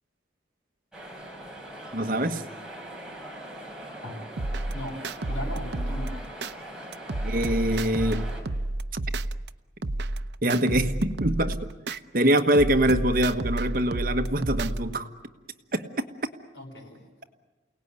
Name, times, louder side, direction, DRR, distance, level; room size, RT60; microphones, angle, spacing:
sound 1, 0.9-8.4, right 1 dB, 5° right, 4.5 m, -41 dB
voice 1, 1.9-2.4 7.2-8.2 10.4-15.1 15.7-15.9, right 1 dB, 50° right, 7 dB, 1.4 m, -24 dB
sound 2, 4.4-6.5 6.9-9.5 9.8-12.0 12.4-14.9, right 2 dB, 75° right, 0.8 m, -30 dB
voice 2, 4.7-6.2 16.5-17.3, left 1 dB, 85° left, 0 dB, 7.4 m, -38 dB
29.0 x 18.5 x 9.7 m, 1.2 s
head